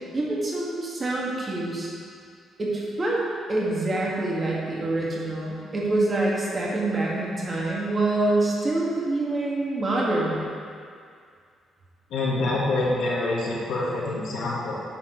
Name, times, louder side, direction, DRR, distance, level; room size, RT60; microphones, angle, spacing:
voice 1, 0.1-1.9 2.6-3.2 3.5-10.4, right 2 dB, 30° right, -5 dB, 2.0 m, -26 dB
voice 2, 12.1-14.8, left 2 dB, 80° left, -6 dB, 1.6 m, -26 dB
10.5 x 4.6 x 4.0 m, 2.2 s
cardioid pair, 90°, 0 cm